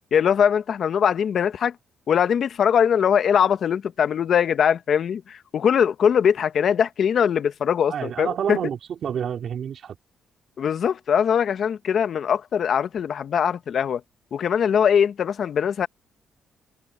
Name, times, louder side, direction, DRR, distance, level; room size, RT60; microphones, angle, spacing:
voice 1, 0.1-1.7 2.1-8.6 10.6-14.0 14.3-15.9, left 8 dB, 60° left, 1.1 m, -21 dB
voice 2, 7.9-10.0, right 8 dB, 60° right, 3.0 m, -28 dB
cardioid pair, 90°, 0 cm